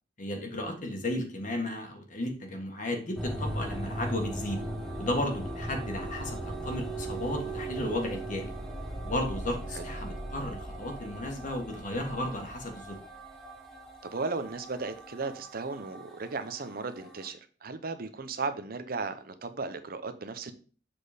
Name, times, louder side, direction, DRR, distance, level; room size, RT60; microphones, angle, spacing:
voice 1, 0.2-4.6 5.0-8.5 9.0-13.0, left 1 dB, 45° left, 2 dB, 1.6 m, -34 dB
sound 1, 3.2-17.3, right 1 dB, ahead, 1.3 m, -38 dB
voice 2, 14.0-20.5, right 4 dB, 55° right, 10 dB, 0.8 m, -36 dB
7.3 x 4.3 x 4.9 m, 0.40 s
head